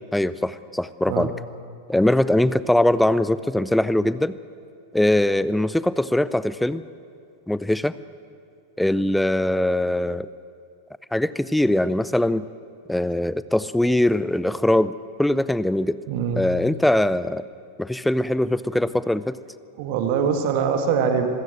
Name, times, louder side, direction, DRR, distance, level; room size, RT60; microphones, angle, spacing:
voice 1, 0.1-1.3 1.9-4.4 4.9-6.8 7.5-7.9 8.8-10.3 11.1-12.4 12.9-14.9 15.2-16.0 16.4-17.4 17.8-19.4, left 1 dB, 5° left, 16 dB, 0.6 m, -21 dB
voice 2, 16.1-16.4 19.8-21.3, right 6 dB, 50° right, 6 dB, 1.9 m, -23 dB
25.5 x 16.0 x 7.8 m, 2.5 s
figure-of-eight pair, 90°, 0 cm